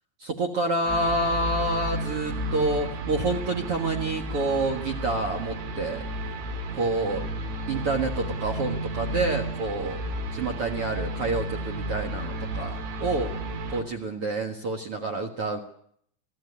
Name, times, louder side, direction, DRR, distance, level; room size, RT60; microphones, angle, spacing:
voice 1, 0.2-6.1 6.7-7.2 7.7-10.0 10.3-13.3 13.7-15.6, right 2 dB, 65° right, 2 dB, 1.4 m, -28 dB
sound 1, 0.9-13.8, right 1 dB, 85° right, 4.9 m, -32 dB
23.5 x 14.5 x 9.8 m, 0.68 s
omnidirectional pair, 5.2 m